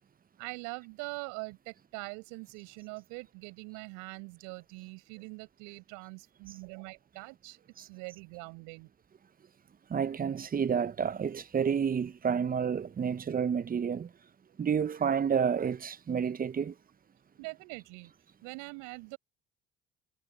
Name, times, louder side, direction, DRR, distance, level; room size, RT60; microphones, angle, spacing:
voice 1, 0.4-8.9 17.4-18.1 18.4-19.2, right 30 dB, 75° right, 6.4 m, -43 dB
voice 2, 9.9-14.1 14.6-16.7, right 7 dB, 30° right, 0.9 m, -30 dB
hypercardioid pair, 60°, 30 cm